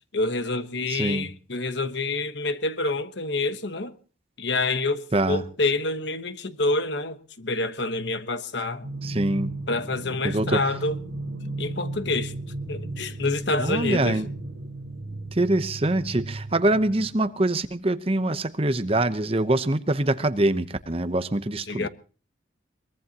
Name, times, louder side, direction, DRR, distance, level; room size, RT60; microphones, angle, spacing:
voice 1, 0.1-3.9 4.4-8.9 9.7-11.0 11.6-12.3 12.7-14.2 21.7-21.9, left 2 dB, 65° left, 1.2 m, -27 dB
voice 2, 0.9-1.3 5.1-5.4 9.0-9.5 10.2-10.6 13.6-14.3 15.3-21.9, right 1 dB, 30° right, 0.9 m, -24 dB
sound 1, 8.8-17.2, right 2 dB, 60° right, 5.6 m, -35 dB
23.0 x 21.5 x 2.9 m
head